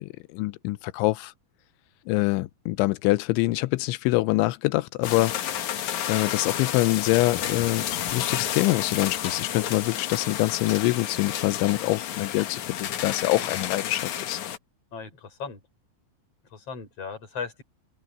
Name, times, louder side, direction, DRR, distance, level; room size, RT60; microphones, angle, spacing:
voice 1, 0.0-1.3 2.1-14.4, left 20 dB, 90° left, 3.1 m, -25 dB
sound 1, 5.0-14.6, left 10 dB, 75° left, 1.7 m, -31 dB
voice 2, 14.9-15.6 16.5-17.6, left 5 dB, 35° left, 5.8 m, -37 dB
open air
omnidirectional pair, 5.4 m